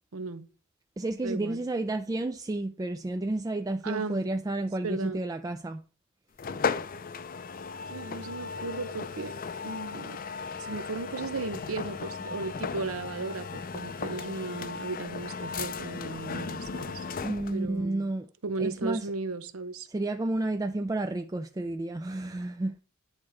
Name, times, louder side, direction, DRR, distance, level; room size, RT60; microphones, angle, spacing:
voice 1, 0.1-0.5 1.2-1.6 3.8-4.2 4.8-5.2 7.8-9.3 9.6-10.2 10.6-17.1 17.5-18.1 18.4-19.9, right 3 dB, 85° right, 0.8 m, -35 dB
voice 2, 1.0-5.8 17.2-18.3 18.6-19.1 19.9-22.8, right 2 dB, 15° right, 0.3 m, -31 dB
sound 1, 6.4-17.7, left 5 dB, 40° left, 0.5 m, -36 dB
9.7 x 4.2 x 4.9 m
head